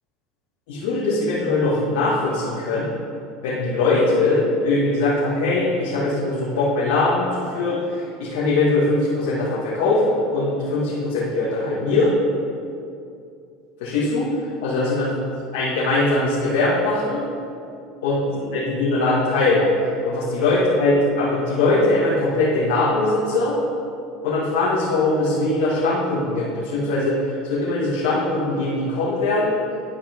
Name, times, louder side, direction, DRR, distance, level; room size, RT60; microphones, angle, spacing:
voice 1, 0.7-2.9 3.4-7.8 8.2-12.1 13.8-14.3 14.6-15.1 15.5-17.2 18.0-19.6 20.0-23.6 24.2-27.2 27.4-29.6, left 2 dB, 75° left, -9 dB, 2.1 m, -21 dB
11.5 x 4.9 x 4.7 m, 2.5 s
supercardioid pair, 105°, 0 cm